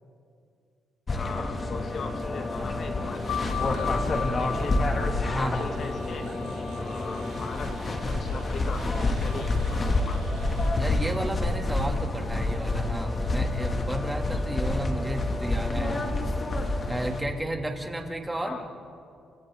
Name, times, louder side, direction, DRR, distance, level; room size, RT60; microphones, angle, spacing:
sound 1, 1.1-17.2, left 2 dB, 35° left, 2.4 m, -28 dB
voice 1, 1.2-4.8 5.3-6.3 6.8-10.3 18.4-18.7, left 4 dB, 55° left, 5 dB, 1.9 m, -39 dB
sound 2, 3.1-10.7, right 6 dB, 90° right, 5.2 m, -51 dB
sound 3, 3.3-8.5, left 8 dB, 90° left, 1.1 m, -37 dB
voice 2, 5.2-5.6 10.8-16.1 16.9-18.6, right 1 dB, 15° right, 2 dB, 2.7 m, -33 dB
29.5 x 26.0 x 3.9 m, 2.4 s
cardioid pair, 90°, 0 cm